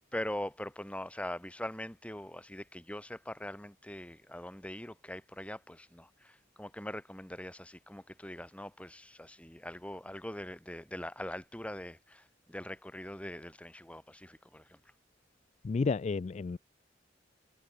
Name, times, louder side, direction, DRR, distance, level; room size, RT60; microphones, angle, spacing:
voice 1, 0.1-14.8, left 1 dB, 5° left, 2.0 m, -42 dB
voice 2, 15.6-16.6, left 4 dB, 35° left, 0.3 m, -31 dB
head